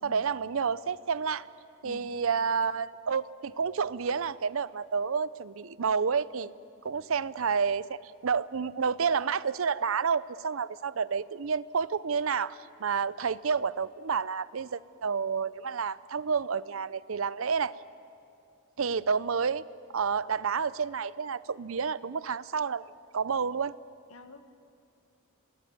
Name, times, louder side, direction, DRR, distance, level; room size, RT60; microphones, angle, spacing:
voice 1, 0.0-1.5 1.8-6.5 6.8-17.7 18.8-19.7 19.9-22.8 23.1-23.7, right 6 dB, 70° right, 18 dB, 0.6 m, -30 dB
voice 2, 1.8-2.2 24.1-24.4, left 1 dB, 85° left, 8 dB, 1.7 m, -48 dB
27.0 x 19.0 x 9.4 m, 2.6 s
head